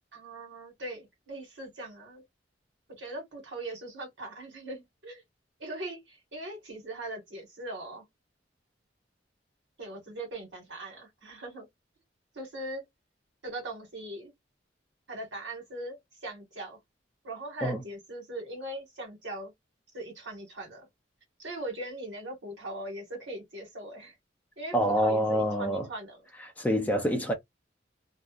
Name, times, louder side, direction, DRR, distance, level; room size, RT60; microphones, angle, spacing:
voice 1, 0.1-2.2 3.0-5.2 5.6-8.0 9.8-11.7 12.3-12.8 13.4-14.3 15.1-16.8 17.2-19.5 19.9-20.9 21.4-24.1 24.6-26.2, right 1 dB, 80° right, 1.5 m, -40 dB
voice 2, 24.7-25.9 26.6-27.3, equal, 10° left, 0.5 m, -26 dB
2.7 x 2.1 x 2.4 m
head